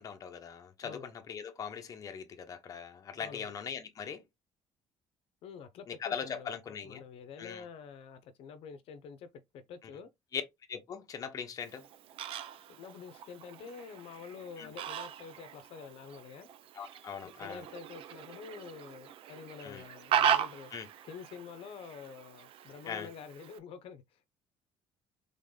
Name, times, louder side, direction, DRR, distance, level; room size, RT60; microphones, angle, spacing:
voice 1, 0.0-4.2 6.0-7.0 7.4-7.6 10.3-10.4 10.7-11.8 14.6-14.7 16.8-17.6 19.6-19.8 20.7-20.9 22.9-23.1, left 7 dB, 35° left, 0.8 m, -40 dB
voice 2, 3.2-3.5 5.4-9.3 9.5-10.1 12.7-16.5 17.2-20.7 21.0-24.3, left 6 dB, 65° left, 0.7 m, -48 dB
Fowl, 11.6-23.6, right 9 dB, 60° right, 0.6 m, -37 dB
3.9 x 3.6 x 3.7 m
cardioid pair, 160°, 10 cm